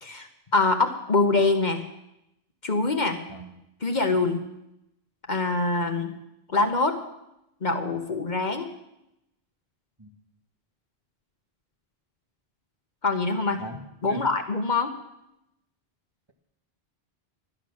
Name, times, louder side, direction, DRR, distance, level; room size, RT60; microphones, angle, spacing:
voice 1, 0.0-1.8 2.6-3.2 3.8-4.5 5.3-6.1 6.5-7.0 7.6-8.7 13.0-13.6 14.0-14.9, left 3 dB, 50° left, 5 dB, 1.1 m, -24 dB
voice 2, 3.3-3.5 10.0-10.1 13.6-13.8 14.0-14.3, equal, 25° right, 0 dB, 1.6 m, -37 dB
12.5 x 11.5 x 6.4 m, 0.85 s
omnidirectional pair, 1.0 m